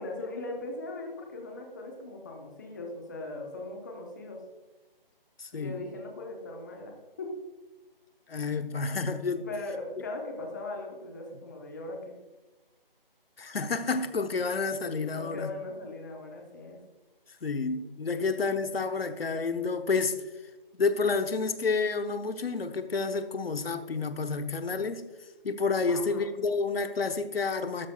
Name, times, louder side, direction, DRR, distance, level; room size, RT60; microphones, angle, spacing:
voice 1, 0.0-4.4 5.5-7.4 9.3-12.2 15.1-16.8 18.2-18.3 25.9-26.2, left 2 dB, 20° left, 1 dB, 0.9 m, -39 dB
voice 2, 5.4-5.8 8.3-9.4 13.4-15.5 17.4-20.2 20.8-25.0 25.4-27.9, left 4 dB, 80° left, 9 dB, 1.0 m, -29 dB
12.5 x 10.0 x 2.3 m, 1.1 s
figure-of-eight pair, 170°, 29 cm